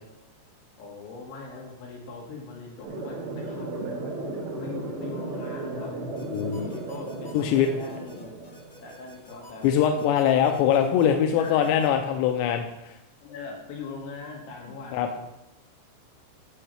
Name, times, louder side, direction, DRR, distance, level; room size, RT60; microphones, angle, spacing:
voice 1, 0.8-3.9 4.6-6.0 6.4-8.3 8.8-10.1 11.4-11.8 13.2-15.2, left 4 dB, 65° left, -2 dB, 3.7 m, -41 dB
sound 1, 2.8-8.9, right 2 dB, 65° right, 3.3 m, -35 dB
sound 2, 6.2-11.9, left 2 dB, 45° left, 1.8 m, -51 dB
voice 2, 6.3-6.7 7.3-7.7 9.6-12.7 14.9-15.1, left 9 dB, 85° left, 4 dB, 2.6 m, -22 dB
13.5 x 5.5 x 3.3 m, 0.89 s
omnidirectional pair, 5.4 m